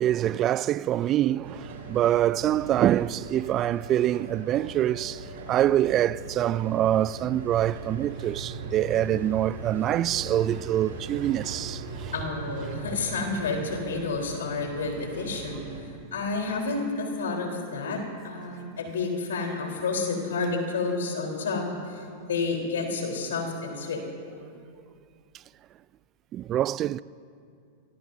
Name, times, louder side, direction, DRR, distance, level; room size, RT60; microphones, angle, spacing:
voice 1, 0.0-12.1 26.3-27.0, right 12 dB, 35° right, 0.3 m, -25 dB
sound 1, 1.4-15.8, right 3 dB, 75° right, 4.6 m, -39 dB
voice 2, 12.1-24.0, left 3 dB, 80° left, 3.8 m, -30 dB
29.0 x 18.0 x 2.7 m
hypercardioid pair, 105°, 0 cm